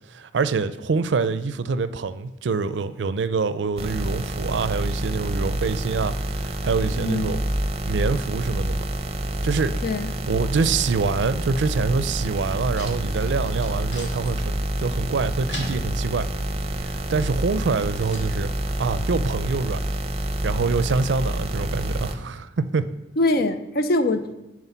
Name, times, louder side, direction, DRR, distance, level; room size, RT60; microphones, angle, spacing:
voice 1, 0.1-7.4 7.9-8.9 9.4-9.8 10.3-16.3 16.8-18.5 18.8-19.8 20.4-22.9, right 4 dB, 85° right, 0.5 m, -25 dB
sound 1, 3.8-22.2, right 1 dB, 35° right, 0.6 m, -27 dB
voice 2, 7.0-7.4 9.8-10.1 23.2-24.3, left 2 dB, 55° left, 0.6 m, -23 dB
sound 2, 11.9-18.2, equal, 85° left, 2.2 m, -41 dB
9.7 x 4.8 x 5.6 m
head